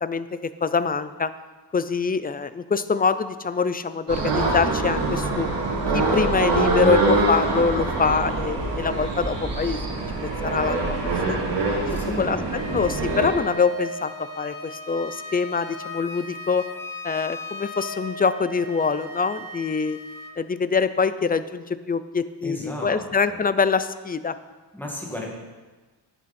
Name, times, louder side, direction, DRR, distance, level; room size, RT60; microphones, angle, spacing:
voice 1, 0.0-1.3 1.7-5.5 5.9-9.8 10.2-10.8 11.3-11.4 12.2-12.4 12.7-16.7 17.0-20.0 20.4-24.4, left 5 dB, 25° left, 13 dB, 0.3 m, -24 dB
sound 1, 4.1-13.3, right 3 dB, 75° right, 2.4 m, -24 dB
voice 2, 11.9-12.6 22.4-23.0 23.3-23.4 24.7-25.3, left 1 dB, 5° left, -2 dB, 2.1 m, -34 dB
Wind instrument woodwind instrument, 12.5-20.4, equal, 50° left, 1.1 m, -37 dB
10.0 x 10.0 x 4.3 m, 1.3 s
wide cardioid pair, 135°, 42 cm